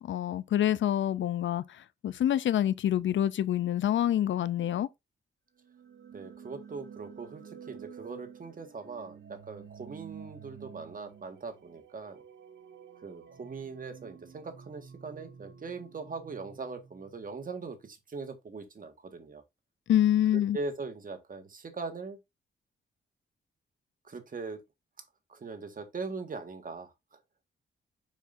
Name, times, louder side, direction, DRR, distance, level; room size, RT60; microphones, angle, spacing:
voice 1, 0.0-4.9 19.9-20.6, left 11 dB, 75° left, 0.5 m, -27 dB
sound 1, 5.6-17.5, right 7 dB, 70° right, 1.2 m, -50 dB
voice 2, 6.1-12.2 13.0-19.4 20.3-22.2 24.0-24.6 25.3-27.2, right 4 dB, 45° right, 1.7 m, -41 dB
7.1 x 5.8 x 2.6 m
cardioid pair, 85°, 20 cm